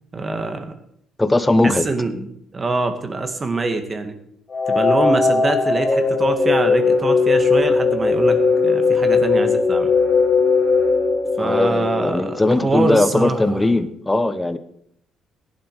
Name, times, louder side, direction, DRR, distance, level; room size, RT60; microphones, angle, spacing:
voice 1, 0.1-0.7 1.6-4.1 4.7-9.9 11.4-13.7, right 3 dB, 30° right, 7 dB, 2.0 m, -24 dB
voice 2, 1.2-1.9 11.4-14.6, left 2 dB, 15° left, 12 dB, 1.1 m, -19 dB
sound 1, 4.5-12.5, left 4 dB, 35° left, 3.5 m, -18 dB
17.0 x 11.0 x 5.0 m, 0.70 s
cardioid pair, 105°, 0 cm